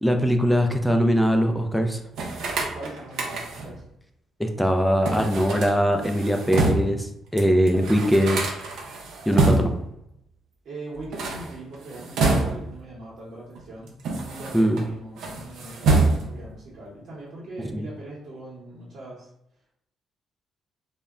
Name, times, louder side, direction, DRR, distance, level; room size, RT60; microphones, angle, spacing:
voice 1, 0.0-2.0 4.4-8.4 9.3-9.7 14.5-14.8 17.7-17.9, equal, ahead, 4 dB, 0.3 m, -21 dB
sound 1, 2.1-3.8 5.0-7.0 7.4-7.5 7.7-9.9 11.0-12.8 13.6-14.8 15.2-16.5, right 3 dB, 80° right, 0.5 m, -26 dB
voice 2, 2.7-3.8 10.6-13.9 14.2-19.3, right 2 dB, 60° right, -8 dB, 0.9 m, -40 dB
2.1 x 2.1 x 3.5 m, 0.77 s
cardioid pair, 90°, 0 cm